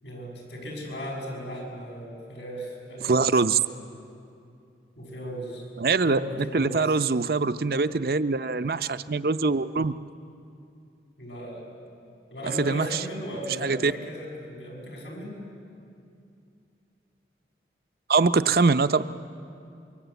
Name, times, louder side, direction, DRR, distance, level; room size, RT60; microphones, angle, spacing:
voice 1, 0.0-3.7 4.9-5.7 6.0-7.0 11.2-11.7 12.3-15.5, equal, 80° left, 0 dB, 6.7 m, -37 dB
voice 2, 3.0-3.6 5.8-9.9 12.5-13.0 13.6-13.9 18.1-19.0, right 4 dB, 55° right, 13 dB, 0.6 m, -23 dB
25.5 x 23.0 x 8.2 m, 2.5 s
head